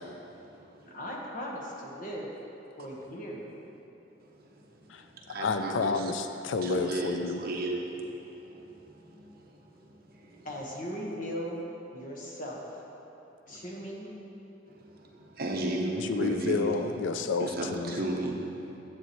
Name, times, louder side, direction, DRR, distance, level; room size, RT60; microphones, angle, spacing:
voice 1, 0.0-1.0 4.2-6.1 6.6-10.5 13.5-13.7 14.7-16.9 17.4-18.8, right 2 dB, 55° right, 0 dB, 0.9 m, -36 dB
voice 2, 0.8-2.3 2.8-3.5 10.4-11.6 11.9-12.6 13.5-14.1, equal, 45° left, -2 dB, 1.3 m, -38 dB
voice 3, 4.9-7.4 16.0-18.0, left 4 dB, 85° left, 8 dB, 0.4 m, -30 dB
9.6 x 8.3 x 3.1 m, 3.0 s
head